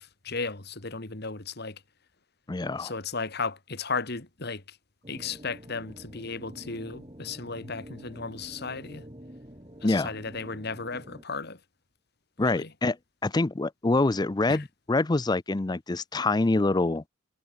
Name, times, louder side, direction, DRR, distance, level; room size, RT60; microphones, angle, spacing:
voice 1, 0.0-1.8 2.8-4.8 5.1-9.1 9.8-11.6 12.4-12.7 14.5-14.6, left 4 dB, 55° left, 2.3 m, -35 dB
voice 2, 2.5-2.9 9.8-10.1 12.4-13.0 13.2-17.0, left 2 dB, 20° left, 0.5 m, -25 dB
sound 1, 5.0-11.2, equal, 25° right, 6.8 m, -47 dB
head